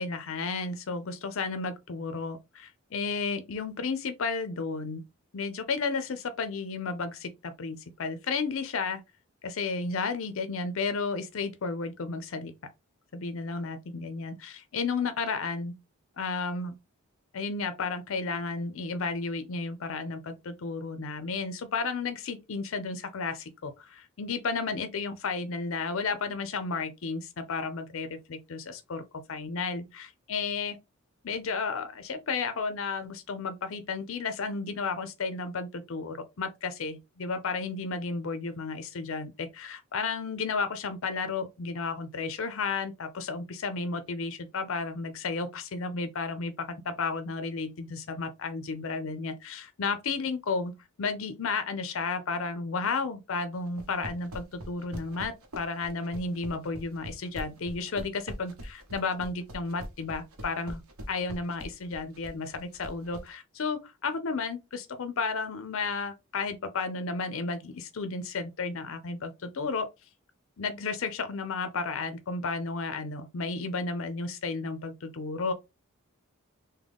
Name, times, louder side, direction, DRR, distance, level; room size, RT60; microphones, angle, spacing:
voice 1, 0.0-5.0 5.3-9.0 9.4-12.5 13.1-15.7 16.2-16.8 17.3-29.0 29.3-30.8 31.2-50.7 51.0-60.8 61.1-69.9 70.6-75.5, left 4 dB, 65° left, 0.5 m, -33 dB
sound 1, 53.7-63.3, equal, 75° right, 0.9 m, -42 dB
3.6 x 2.2 x 3.4 m
head